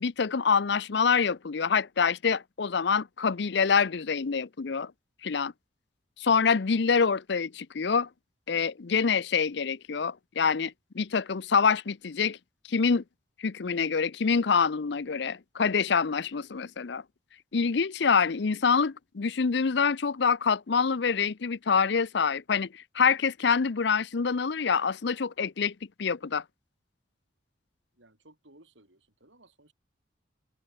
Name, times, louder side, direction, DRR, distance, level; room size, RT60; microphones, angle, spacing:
voice 1, 0.0-4.9 5.2-5.5 6.2-8.1 8.5-12.4 12.7-13.0 13.4-17.0 17.5-26.4, left 5 dB, 65° left, 0.6 m, -26 dB
voice 2, 28.0-29.7, right 1 dB, 80° right, 7.7 m, -58 dB
head